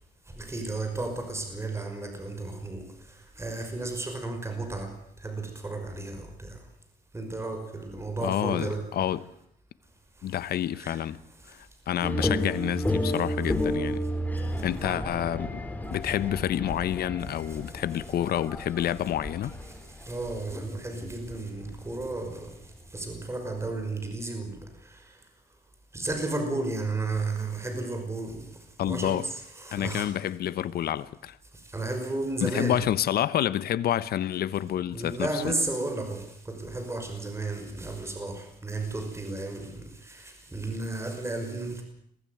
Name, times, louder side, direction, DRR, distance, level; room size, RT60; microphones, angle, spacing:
voice 1, 0.3-6.6 7.1-8.9 10.2-11.0 11.4-11.6 13.1-13.2 17.4-18.1 19.4-22.6 22.9-25.2 25.9-28.5 28.8-30.1 31.6-32.9 34.9-41.8, right 2 dB, 15° right, 5.7 m, -34 dB
voice 2, 8.2-9.2 10.2-11.2 11.5-14.0 14.6-15.6 15.9-19.6 28.8-29.2 29.7-31.4 32.4-35.5, left 11 dB, 75° left, 1.0 m, -28 dB
sound 1, 12.0-23.0, equal, 10° left, 3.7 m, -32 dB
22.5 x 15.0 x 9.3 m
cardioid pair, 110°, 16 cm